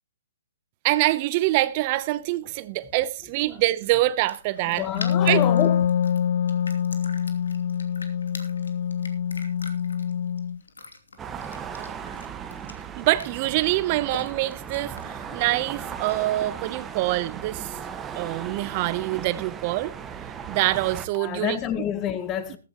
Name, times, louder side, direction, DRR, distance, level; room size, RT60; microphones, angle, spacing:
voice 1, 0.8-4.8 5.3-5.4 13.0-17.8 18.1-19.9 20.5-21.6, right 17 dB, 35° right, 0.8 m, -25 dB
sound 1, 1.5-16.4, left 3 dB, 85° left, 2.8 m, -46 dB
voice 2, 4.7-5.9 21.1-22.6, left 9 dB, 25° left, 1.8 m, -28 dB
Wind instrument woodwind instrument, 4.9-10.6, left 8 dB, 55° left, 0.6 m, -25 dB
sound 2, 11.2-21.1, right 7 dB, 15° right, 1.4 m, -37 dB
14.5 x 14.5 x 3.0 m
hypercardioid pair, 135°, 0 cm